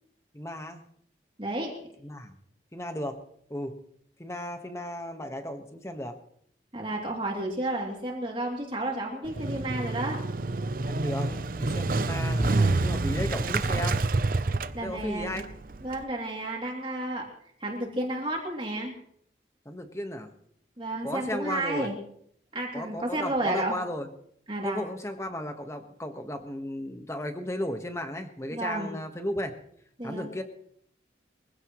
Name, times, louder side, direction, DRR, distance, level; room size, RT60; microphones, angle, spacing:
voice 1, 0.3-0.8 2.0-2.3 2.7-3.2 3.5-3.8 4.2-6.1 10.8-14.0 14.8-15.5 19.6-20.3 21.0-21.9 22.7-24.1 24.6-29.5 30.0-30.4, left 1 dB, 15° left, 6 dB, 1.4 m, -34 dB
voice 2, 1.4-1.7 6.7-10.2 14.7-15.5 15.8-17.3 17.6-18.9 20.8-22.0 22.5-23.8 24.5-24.8 28.5-28.9 30.0-30.3, right 1 dB, 30° right, -1 dB, 2.9 m, -31 dB
Motorcycle, 9.3-16.0, right 3 dB, 50° right, 0.6 m, -28 dB
23.5 x 16.0 x 3.2 m, 0.67 s
head